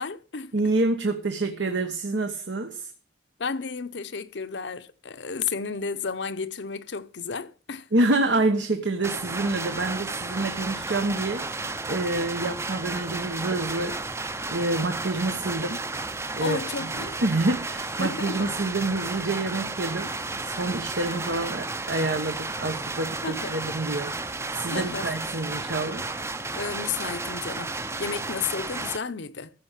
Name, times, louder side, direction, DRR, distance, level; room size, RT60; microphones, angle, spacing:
voice 1, 0.0-0.5 3.4-7.9 16.4-17.2 18.0-18.5 23.2-23.6 24.7-25.1 26.5-29.5, left 5 dB, 70° left, 0.8 m, -32 dB
voice 2, 0.5-2.9 7.9-14.0 14.5-15.8 16.3-16.9 17.2-24.2 24.5-26.1, right 2 dB, 80° right, 1.1 m, -27 dB
Bhagalpur silk weaving power loom, 9.0-29.0, right 3 dB, 15° right, 0.5 m, -33 dB
15.0 x 5.1 x 7.3 m
head